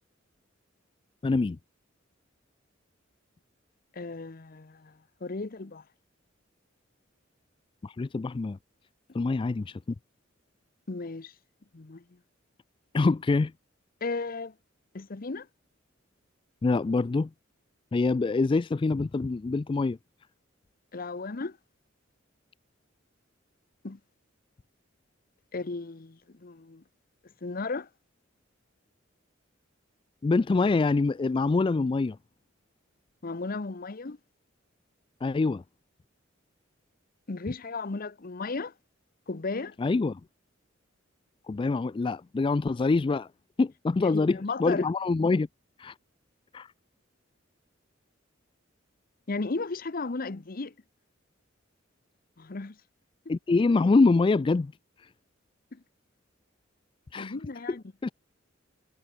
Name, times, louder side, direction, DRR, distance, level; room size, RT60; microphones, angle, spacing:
voice 1, 1.2-1.6 7.8-8.6 9.1-9.8 12.9-13.5 16.6-17.3 17.9-20.0 30.2-32.2 35.2-35.6 39.8-40.2 41.5-43.3 43.6-45.5 45.8-45.9 46.5-46.7 53.3-54.7 55.0-55.1 57.1-57.3 57.7-57.8 58.0-58.1, left 3 dB, 25° left, 0.3 m, -25 dB
voice 2, 3.9-4.9 5.2-5.8 10.9-11.3 11.7-12.0 14.0-14.5 14.9-15.5 20.9-21.6 23.8-24.0 25.5-26.8 27.4-27.9 33.2-34.2 37.3-38.7 39.3-39.8 44.0-44.8 49.3-50.7 52.4-52.8 55.7-55.8 57.1-57.8, left 3 dB, 45° left, 0.8 m, -35 dB
head